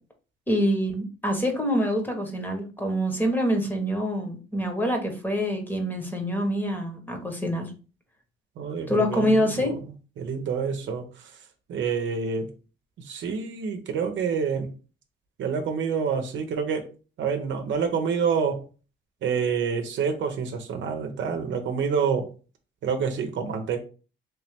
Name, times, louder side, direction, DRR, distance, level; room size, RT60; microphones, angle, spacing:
voice 1, 0.5-7.6 8.9-9.7, equal, 10° left, 4 dB, 1.0 m, -25 dB
voice 2, 8.6-9.7 10.2-11.3 11.7-12.5 13.1-14.7 15.4-16.9 17.2-18.6 19.2-22.3 22.8-23.8, right 6 dB, 70° right, 6 dB, 0.8 m, -27 dB
3.2 x 3.0 x 3.4 m, 0.35 s
cardioid pair, 90°, 20 cm